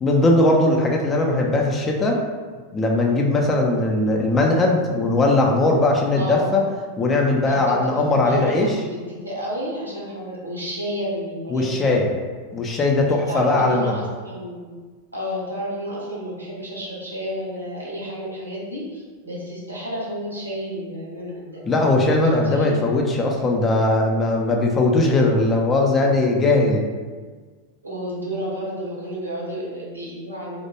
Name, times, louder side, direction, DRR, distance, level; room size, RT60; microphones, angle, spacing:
voice 1, 0.0-2.2 2.7-6.6 7.0-8.7 11.5-12.1 12.5-14.0 21.7-26.9, left 2 dB, 20° left, 0 dB, 0.3 m, -19 dB
voice 2, 6.2-6.6 7.4-11.9 13.3-14.7 15.1-21.6 22.4-22.8 27.8-30.6, equal, 85° right, -5 dB, 0.7 m, -31 dB
2.2 x 2.0 x 2.9 m, 1.5 s
figure-of-eight pair, 90°, 0 cm